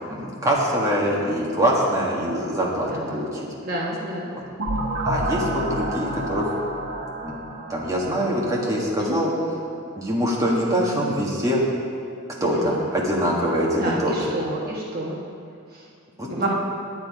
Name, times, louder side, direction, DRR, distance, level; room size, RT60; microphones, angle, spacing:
voice 1, 0.1-3.5 5.0-6.5 7.2-7.3 7.7-9.3 9.9-11.6 12.4-14.3 16.2-16.5, equal, 15° right, -4 dB, 1.6 m, -24 dB
voice 2, 3.6-4.3 9.0-9.2 12.4-12.7 13.8-15.2 15.7-15.8 16.3-16.5, right 1 dB, 45° right, -4 dB, 1.2 m, -29 dB
sound 1, 4.6-9.3, right 1 dB, 75° right, 1.5 m, -29 dB
10.0 x 9.6 x 4.9 m, 2.4 s
head